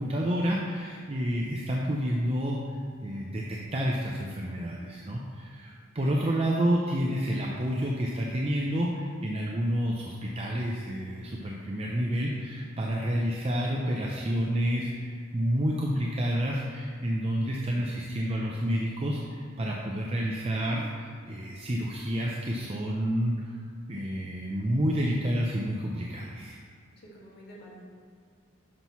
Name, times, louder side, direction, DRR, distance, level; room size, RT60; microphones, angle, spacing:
voice 1, 0.0-2.6 3.0-23.6 23.9-26.6, equal, 30° right, -2 dB, 0.6 m, -29 dB
voice 2, 20.4-20.9 27.1-27.8, equal, 50° left, -5 dB, 1.9 m, -49 dB
11.0 x 5.8 x 3.1 m, 2.1 s
head